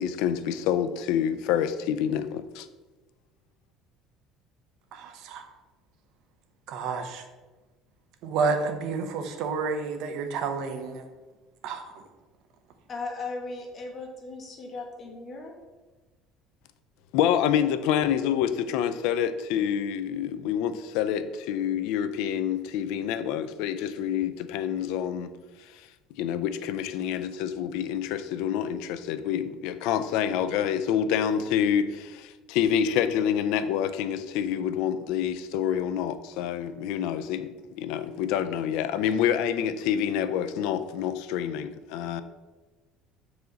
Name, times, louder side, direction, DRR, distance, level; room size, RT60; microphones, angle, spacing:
voice 1, 0.0-2.7 17.1-25.3 25.7-25.8 26.2-37.5 37.8-42.2, left 9 dB, 70° left, 11 dB, 0.4 m, -27 dB
voice 2, 4.9-5.4 6.7-7.2 8.2-11.0 11.6-11.8, right 4 dB, 55° right, 6 dB, 0.8 m, -30 dB
voice 3, 12.9-15.5, left 3 dB, 30° left, 1 dB, 1.1 m, -37 dB
6.2 x 4.8 x 4.0 m, 1.2 s
cardioid pair, 165°, 0 cm